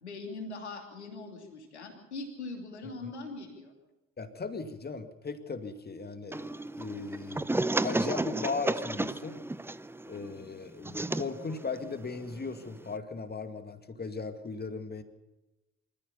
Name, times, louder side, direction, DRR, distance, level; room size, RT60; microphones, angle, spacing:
voice 1, 0.0-3.7, left 3 dB, 85° left, 3 dB, 3.0 m, -41 dB
voice 2, 4.2-7.5 7.8-9.5 10.1-15.0, left 4 dB, 30° left, 8 dB, 2.2 m, -37 dB
sound 1, 6.3-13.0, right 2 dB, 5° right, 0.7 m, -33 dB
25.0 x 14.5 x 7.1 m, 1.0 s
figure-of-eight pair, 45°, 33 cm